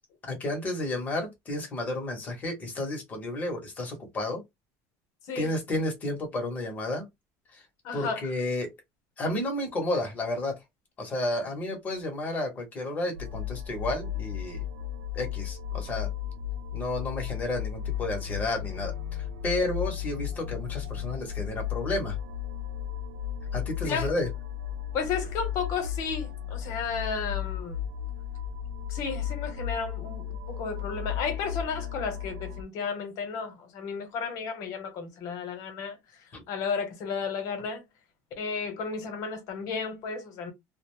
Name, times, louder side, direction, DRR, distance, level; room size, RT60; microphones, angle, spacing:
voice 1, 0.2-4.4 5.3-7.0 7.5-7.6 7.9-8.7 9.2-10.6 11.0-14.6 15.1-16.1 16.7-22.2 23.5-24.3 36.3-36.4, left 1 dB, 20° left, 0.9 m, -31 dB
voice 2, 7.8-8.3 23.8-24.1 24.9-27.8 28.9-36.0 36.5-37.8 38.4-40.5, left 5 dB, 45° left, 1.0 m, -33 dB
sound 1, 13.1-32.6, left 10 dB, 80° right, 0.4 m, -34 dB
2.5 x 2.1 x 3.0 m
cardioid pair, 175°, 8 cm